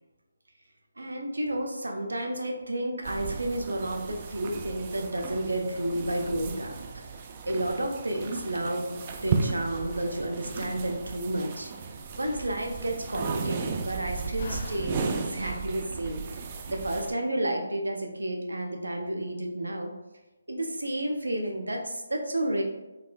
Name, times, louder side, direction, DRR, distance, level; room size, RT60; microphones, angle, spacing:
voice 1, 1.0-11.7 12.2-19.9 20.5-22.6, right 1 dB, 90° right, 2 dB, 0.6 m, -31 dB
sound 1, 3.0-17.1, right 5 dB, 30° right, 0.3 m, -35 dB
Slam, 9.4-16.6, left 3 dB, 45° left, 0.4 m, -49 dB
4.1 x 2.5 x 2.2 m, 1.1 s
figure-of-eight pair, 155°, 0 cm